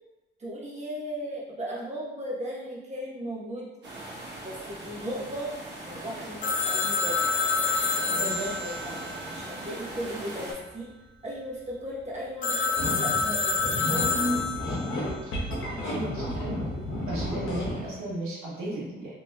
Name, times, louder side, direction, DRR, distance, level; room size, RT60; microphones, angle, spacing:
voice 1, 0.4-3.7 4.4-5.5 5.8-7.2 8.1-8.7 9.2-10.9 11.2-14.3 15.5-16.3, equal, 35° right, -6 dB, 1.0 m, -37 dB
sound 1, 3.8-10.5, right 1 dB, 55° right, 1.0 m, -40 dB
Telephone, 6.4-10.1 12.4-15.0, left 4 dB, 40° left, 0.5 m, -28 dB
voice 2, 8.0-9.0 15.8-16.7 17.1-19.1, right 1 dB, 90° right, -6 dB, 1.2 m, -35 dB
sound 2, 12.7-17.9, left 1 dB, 75° left, 0.8 m, -31 dB
2.9 x 2.6 x 2.3 m, 1.1 s
cardioid pair, 105°, 21 cm